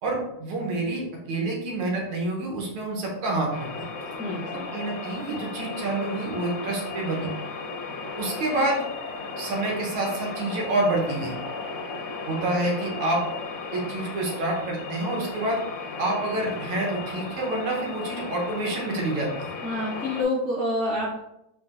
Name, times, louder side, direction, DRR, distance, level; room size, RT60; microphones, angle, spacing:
voice 1, 0.0-3.7 4.7-7.3 8.2-8.8 9.4-11.4 12.3-13.2 13.7-15.6 16.0-19.5, right 2 dB, 85° right, -1 dB, 1.9 m, -28 dB
sound 1, 3.5-20.2, left 4 dB, 70° left, 1.2 m, -35 dB
voice 2, 4.2-4.7 19.6-21.2, left 1 dB, 15° left, -9 dB, 0.8 m, -27 dB
4.2 x 3.2 x 2.5 m, 0.82 s
omnidirectional pair, 2.3 m